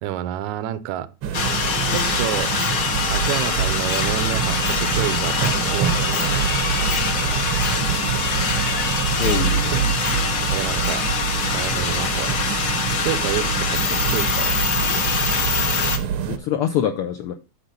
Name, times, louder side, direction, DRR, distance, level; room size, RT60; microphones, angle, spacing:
voice 1, 0.0-1.1 1.9-2.5 3.1-6.5 10.5-11.1 11.5-15.4, right 12 dB, 85° right, 2.1 m, -29 dB
sound 1, 1.2-16.4, right 8 dB, 70° right, 1.2 m, -25 dB
sound 2, 1.3-16.0, left 5 dB, 60° left, 1.3 m, -24 dB
sound 3, 6.1-10.4 10.7-10.9 11.2-15.3, left 3 dB, 40° left, 1.0 m, -38 dB
voice 2, 8.9-9.7 16.3-17.3, left 10 dB, 80° left, 1.2 m, -25 dB
9.7 x 3.3 x 6.8 m
omnidirectional pair, 3.3 m